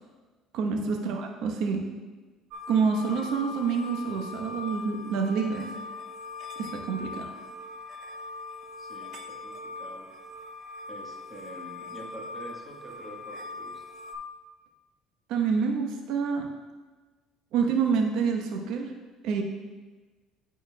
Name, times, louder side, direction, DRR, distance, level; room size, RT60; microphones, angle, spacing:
voice 1, 0.5-1.9 2.7-5.7 6.6-7.3 15.3-16.5 17.5-18.9 19.2-19.4, right 5 dB, 70° right, 2 dB, 0.9 m, -27 dB
sound 1, 2.5-14.1, left 3 dB, 50° right, 0.6 m, -41 dB
voice 2, 8.8-10.1 10.9-13.8, right 1 dB, 10° right, -3 dB, 1.3 m, -46 dB
11.0 x 4.4 x 2.3 m, 1.3 s
cardioid pair, 125°, 0 cm